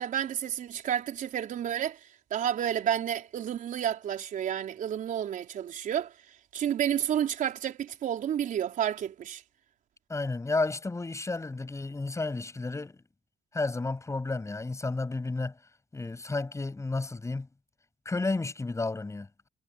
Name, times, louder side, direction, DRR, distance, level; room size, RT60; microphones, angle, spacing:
voice 1, 0.0-2.0 2.3-6.1 6.5-9.4, right 10 dB, 70° right, 4.7 m, -30 dB
voice 2, 10.1-13.0 13.5-15.6 15.9-17.5 18.1-19.5, left 3 dB, 20° left, 7.2 m, -32 dB
cardioid pair, 100°, 14 cm